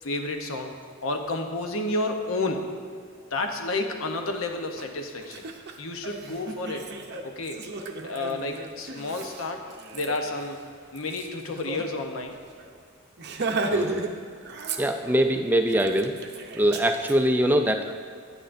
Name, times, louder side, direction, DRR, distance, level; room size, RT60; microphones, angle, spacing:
voice 1, 0.0-2.7 3.3-5.5 5.8-6.9 7.2-7.6 8.0-9.6 9.9-10.6 10.9-12.4, left 2 dB, 70° left, 4 dB, 0.8 m, -30 dB
Laughter, 4.8-4.9 5.2-11.9 12.2-12.3 12.6-12.8 13.2-14.1 14.4-15.2 15.7-17.1, right 3 dB, 55° right, 0.6 m, -34 dB
voice 2, 13.7-14.0 14.8-16.1 16.5-17.9, right 1 dB, 10° right, 5 dB, 0.4 m, -23 dB
9.8 x 9.0 x 2.6 m, 2.1 s
head